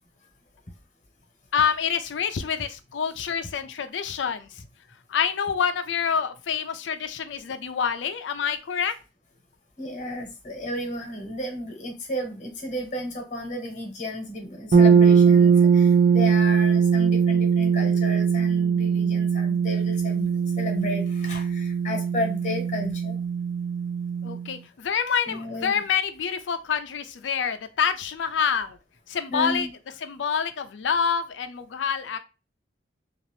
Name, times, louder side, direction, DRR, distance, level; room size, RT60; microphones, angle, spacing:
voice 1, 1.5-4.5 5.1-8.9 24.2-28.8 29.1-29.7 30.0-32.2, left 7 dB, 80° left, 0.4 m, -27 dB
voice 2, 9.8-23.2 25.3-25.8 29.3-29.7, left 1 dB, 40° left, 1.0 m, -33 dB
sound 1, 14.7-24.5, right 6 dB, 55° right, 0.5 m, -20 dB
2.6 x 2.4 x 3.2 m
head